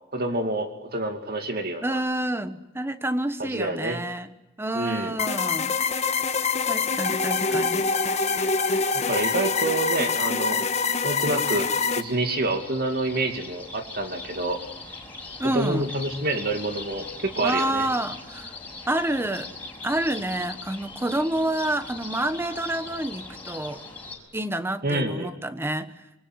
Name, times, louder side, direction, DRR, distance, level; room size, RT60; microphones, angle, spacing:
voice 1, 0.1-2.0 3.4-4.0 4.7-5.1 8.9-10.7 11.0-14.6 15.5-17.9 24.8-25.3, right 2 dB, 50° right, 6 dB, 2.4 m, -27 dB
voice 2, 1.8-4.3 4.6-5.8 6.7-7.9 15.4-15.9 17.4-18.5 18.9-19.5 19.8-23.8 24.3-25.9, right 1 dB, 10° right, 11 dB, 1.2 m, -28 dB
sound 1, 5.2-12.0, left 4 dB, 35° left, 1.3 m, -25 dB
sound 2, 11.0-24.2, left 3 dB, 10° left, 5.9 m, -40 dB
27.0 x 23.5 x 8.0 m, 1.0 s
head